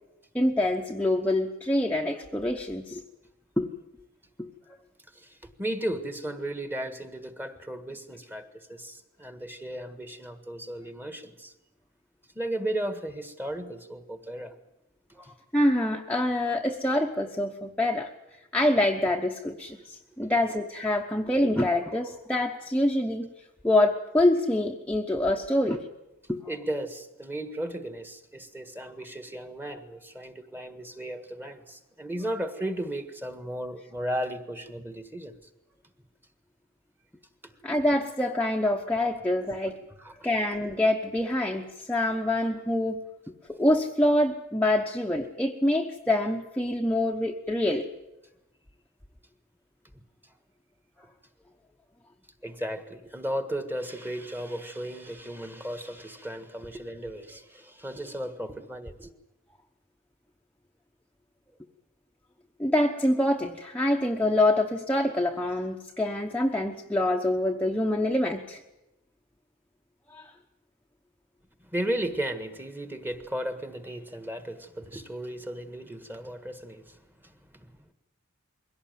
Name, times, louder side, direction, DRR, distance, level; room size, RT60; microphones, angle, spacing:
voice 1, 0.3-3.0 3.6-3.7 4.4-4.5 15.5-18.1 18.5-23.3 23.6-25.8 26.3-26.4 37.6-39.8 40.2-43.0 43.5-47.9 62.6-68.6 70.1-70.3, left 1 dB, 5° left, 0 dB, 1.0 m, -25 dB
voice 2, 5.1-11.5 12.3-14.6 15.2-15.3 20.2-20.4 26.5-35.3 37.4-37.5 40.0-40.3 52.4-59.1 71.6-77.7, right 1 dB, 10° right, 9 dB, 1.6 m, -35 dB
22.0 x 17.0 x 9.3 m, 0.94 s
head